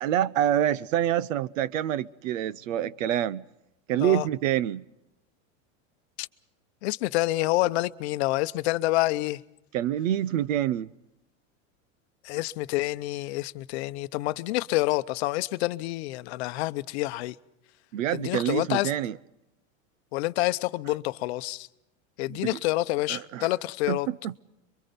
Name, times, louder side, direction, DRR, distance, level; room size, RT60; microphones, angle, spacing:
voice 1, 0.0-3.4 3.9-4.8 9.7-10.9 17.9-19.1 22.3-22.6 23.1-23.5 23.9-24.3, right 11 dB, 75° right, 0.9 m, -26 dB
voice 2, 6.8-9.4 12.2-17.4 18.1-18.9 20.1-21.7 22.2-24.1, left 18 dB, 55° left, 0.8 m, -28 dB
26.0 x 24.0 x 5.3 m
supercardioid pair, 160°, 39 cm